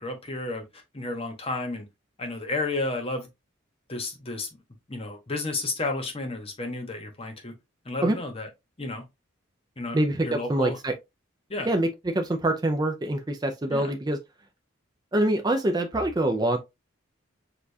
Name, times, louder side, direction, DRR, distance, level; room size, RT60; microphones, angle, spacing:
voice 1, 0.0-1.8 2.2-3.3 3.9-4.5 4.9-7.5 7.8-8.5 8.8-9.0 9.8-10.8 11.5-11.7 13.7-13.9, left 2 dB, 30° left, 1.0 m, -32 dB
voice 2, 9.9-10.9 11.7-14.2 15.1-16.6, right 1 dB, 20° right, 0.4 m, -25 dB
6.6 x 2.4 x 2.6 m
head